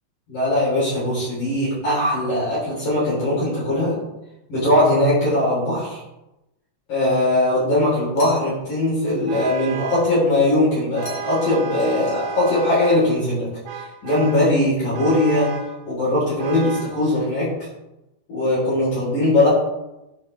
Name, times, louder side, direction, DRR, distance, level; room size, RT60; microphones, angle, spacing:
voice 1, 0.3-4.0 4.5-6.0 6.9-15.5 15.8-17.5 18.3-19.5, left 1 dB, 45° left, -10 dB, 4.8 m, -20 dB
sound 1, 8.2-8.8 11.0-11.5 11.8-12.6, left 3 dB, 60° left, 3.1 m, -41 dB
Vehicle horn car horn honking, 9.3-10.2 11.0-13.1 13.7-14.5 14.9-15.8 16.4-17.0, right 5 dB, 80° right, 3.1 m, -32 dB
12.5 x 5.7 x 3.3 m, 0.94 s
omnidirectional pair, 5.2 m